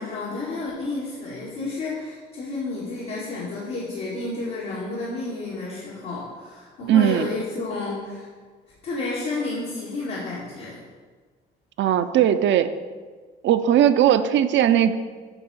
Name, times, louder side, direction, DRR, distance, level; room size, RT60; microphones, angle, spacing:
voice 1, 0.0-8.3 8.8-10.8, left 3 dB, 85° left, -9 dB, 2.0 m, -31 dB
voice 2, 6.9-7.3 11.8-12.7 13.4-15.0, right 10 dB, 70° right, 11 dB, 0.5 m, -18 dB
9.0 x 3.7 x 6.3 m, 1.5 s
cardioid pair, 90°, 20 cm